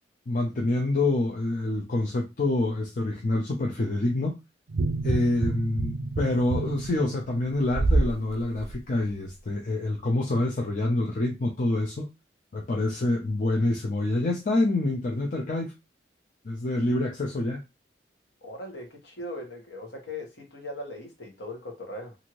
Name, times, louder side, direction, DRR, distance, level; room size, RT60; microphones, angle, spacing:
voice 1, 0.3-4.3 5.0-12.1 12.5-15.7 16.4-17.6, left 2 dB, 45° left, 0 dB, 0.5 m, -26 dB
sound 1, 4.7-8.1 8.6-8.7, right 2 dB, 60° right, 0.4 m, -27 dB
voice 2, 18.4-22.2, left 1 dB, 70° left, 1 dB, 1.2 m, -39 dB
2.7 x 2.5 x 3.0 m, 0.24 s
head